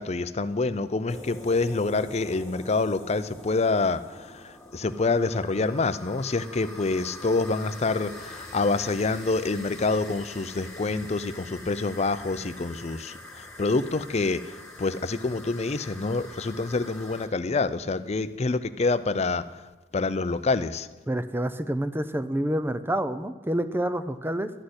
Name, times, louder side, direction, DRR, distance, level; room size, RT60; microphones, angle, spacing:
voice 1, 0.0-4.0 4.7-13.1 13.6-14.4 14.8-19.4 19.9-20.9, left 3 dB, 35° left, 13 dB, 0.5 m, -26 dB
sound 1, 1.1-17.3, left 1 dB, 5° left, 2.1 m, -44 dB
voice 2, 21.1-24.5, right 1 dB, 10° right, 12 dB, 0.6 m, -28 dB
12.5 x 6.5 x 9.6 m, 1.2 s
head